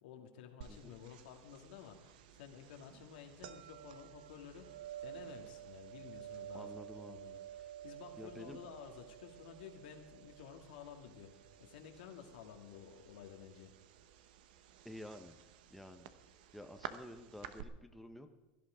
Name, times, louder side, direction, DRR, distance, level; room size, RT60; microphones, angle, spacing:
voice 1, 0.0-6.8 7.1-13.7, left 8 dB, 80° left, 4 dB, 2.1 m, -53 dB
sound 1, 0.6-17.6, right 11 dB, 75° right, 1.0 m, -52 dB
voice 2, 6.5-7.2 7.6-7.7 8.2-8.6 14.8-15.4 15.7-16.1 16.5-18.4, left 1 dB, ahead, 5 dB, 1.1 m, -51 dB
17.0 x 11.5 x 5.1 m, 1.1 s
supercardioid pair, 105°, 5 cm